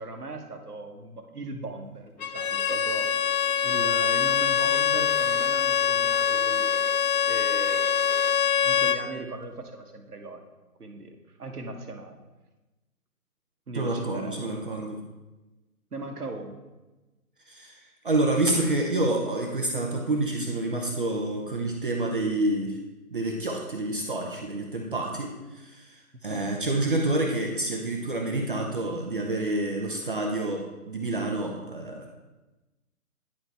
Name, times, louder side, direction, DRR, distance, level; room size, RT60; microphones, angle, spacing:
voice 1, 0.0-3.3 3.6-6.9 7.2-8.2 8.6-10.4 10.8-12.2 13.7-14.5 15.9-16.6 26.3-26.5, right 2 dB, 85° right, 5 dB, 1.1 m, -38 dB
Bowed string instrument, 2.2-9.1, left 8 dB, 70° left, 0.7 m, -24 dB
voice 2, 13.7-15.0 17.5-17.8 18.0-22.8 23.1-32.1, right 2 dB, 35° right, 1 dB, 0.7 m, -28 dB
9.5 x 4.5 x 3.4 m, 1.1 s
figure-of-eight pair, 150°, 45 cm